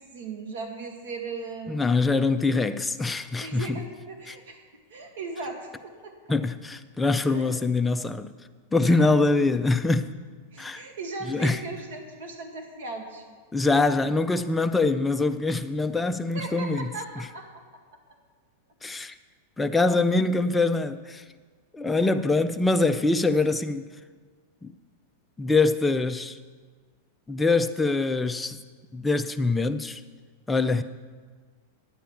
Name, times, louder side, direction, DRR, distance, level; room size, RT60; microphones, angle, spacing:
voice 1, 0.0-1.8 3.4-4.6 4.9-6.1 7.3-7.5 8.8-9.1 10.5-13.2 16.3-17.6 22.0-22.1, right 3 dB, 80° right, 2.0 m, -37 dB
voice 2, 1.7-3.7 4.3-4.4 6.3-8.3 8.7-10.1 10.6-10.8 11.3-11.6 13.5-17.3 18.8-19.2 19.6-21.2 21.7-23.9 24.6-24.7 25.4-26.4 27.3-28.6 28.9-30.0 30.5-30.8, left 3 dB, 5° left, 0.4 m, -24 dB
10.5 x 9.1 x 5.7 m
supercardioid pair, 160°, 0 cm